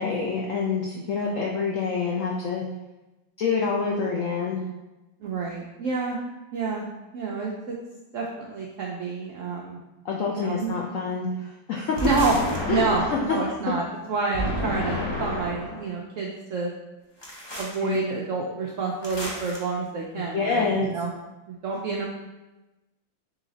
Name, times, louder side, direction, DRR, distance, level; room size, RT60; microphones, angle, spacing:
voice 1, 0.0-2.6 3.4-4.6 10.0-12.0 12.7-13.4 17.8-18.0 20.1-20.9, left 5 dB, 80° left, -2 dB, 0.7 m, -27 dB
voice 2, 5.2-6.2 6.5-7.7 8.1-9.8 10.3-10.7 12.0-12.4 12.6-16.7 17.6-21.1 21.5-22.1, right 4 dB, 80° right, -2 dB, 0.7 m, -28 dB
sound 1, 11.9-13.4 14.3-15.8 17.2-17.8 19.0-19.6, left 1 dB, 30° left, 0.4 m, -30 dB
3.9 x 3.2 x 3.9 m, 1.0 s
omnidirectional pair, 1.9 m